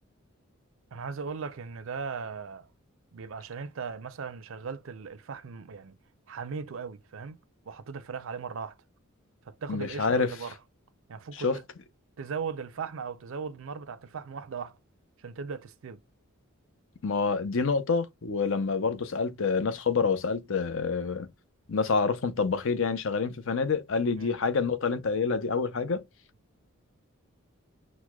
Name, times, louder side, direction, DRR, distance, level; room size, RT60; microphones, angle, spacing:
voice 1, 0.9-2.7 3.1-6.0 6.3-7.4 7.7-8.7 9.5-10.5 11.1-11.6 12.2-14.8 15.2-16.0 24.2-24.4, right 5 dB, 60° right, 0.4 m, -38 dB
voice 2, 9.7-10.3 11.3-11.6 17.0-21.3 21.7-26.0, left 5 dB, 60° left, 0.6 m, -27 dB
6.1 x 2.1 x 2.2 m
head